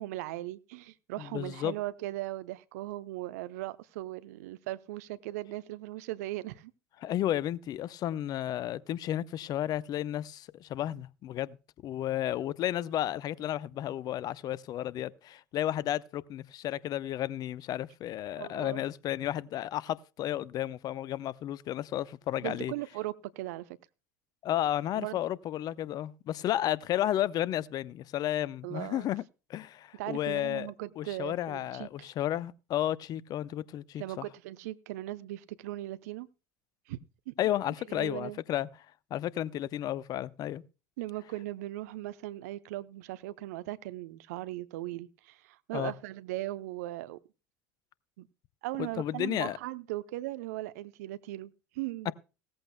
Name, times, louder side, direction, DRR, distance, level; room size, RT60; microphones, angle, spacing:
voice 1, 0.0-6.7 18.4-18.8 22.4-23.8 24.9-25.2 28.6-29.1 29.9-32.1 34.0-36.3 36.9-37.0 37.3-37.4 37.9-38.4 41.0-47.2 48.2-48.3 48.6-52.1, right 17 dB, 65° right, 0.7 m, -38 dB
voice 2, 1.2-1.7 7.0-11.6 11.8-22.7 24.4-29.2 29.5-30.7 31.0-34.3 37.4-38.7 39.1-40.6 45.7-45.9 48.8-49.6 52.1-52.2, left 12 dB, 45° left, 0.7 m, -32 dB
17.0 x 14.0 x 2.2 m
figure-of-eight pair, 65°, 9 cm